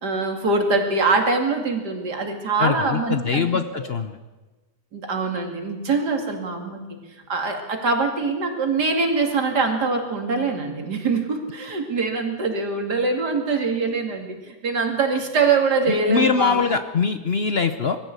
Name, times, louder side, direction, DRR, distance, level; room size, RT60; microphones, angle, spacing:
voice 1, 0.0-3.5 3.7-3.9 4.9-6.8 7.3-16.8, right 4 dB, 80° right, 3 dB, 3.1 m, -23 dB
voice 2, 2.6-4.2 15.9-18.0, left 5 dB, 45° left, 9 dB, 0.9 m, -22 dB
21.0 x 15.0 x 8.2 m, 1.2 s
omnidirectional pair, 1.8 m